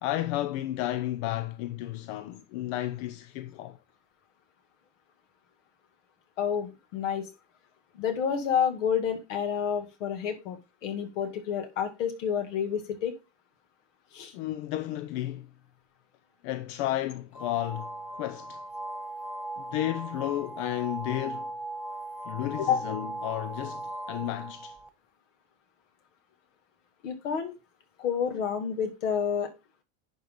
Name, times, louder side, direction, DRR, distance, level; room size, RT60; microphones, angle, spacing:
voice 1, 0.0-3.8 14.3-15.5 16.4-18.6 19.6-21.5 22.3-24.8, left 14 dB, 65° left, 0.7 m, -32 dB
voice 2, 6.4-7.3 8.0-13.1 14.1-14.3 22.6-22.9 27.0-27.5 28.0-29.5, left 8 dB, 85° left, 2.0 m, -29 dB
sound 1, 17.3-24.9, right 1 dB, 5° right, 0.5 m, -38 dB
10.5 x 4.0 x 3.7 m
supercardioid pair, 105°, 36 cm